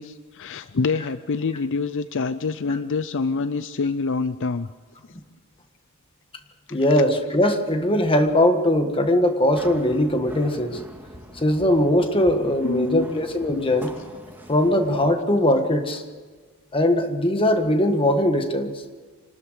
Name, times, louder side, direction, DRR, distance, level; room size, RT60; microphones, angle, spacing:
voice 1, 0.0-4.7 12.6-13.1 13.5-13.7, left 4 dB, 60° left, 14 dB, 0.5 m, -26 dB
voice 2, 6.7-10.8 11.3-13.9 14.5-16.0 16.7-18.7, left 1 dB, 25° left, 6 dB, 1.6 m, -20 dB
sound 1, 9.5-15.0, equal, 10° right, 2.1 m, -43 dB
26.0 x 13.0 x 8.1 m, 1.5 s
head